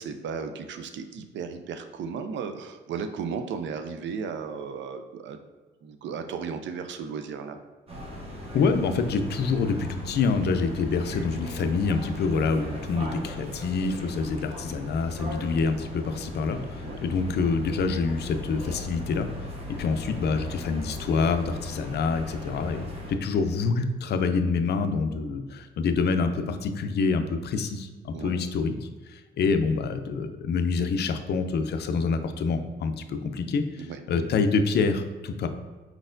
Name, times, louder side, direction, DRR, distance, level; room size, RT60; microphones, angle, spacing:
voice 1, 0.0-5.4 5.8-7.6 16.8-17.1 28.1-28.4 33.8-34.0, right 6 dB, 70° right, 8 dB, 0.5 m, -35 dB
sound 1, 7.9-23.1, left 1 dB, 30° right, 1.0 m, -38 dB
voice 2, 8.5-19.5 19.8-35.5, left 4 dB, 55° left, 8 dB, 0.5 m, -26 dB
4.5 x 4.0 x 2.6 m, 1.2 s
cardioid pair, 90°, 20 cm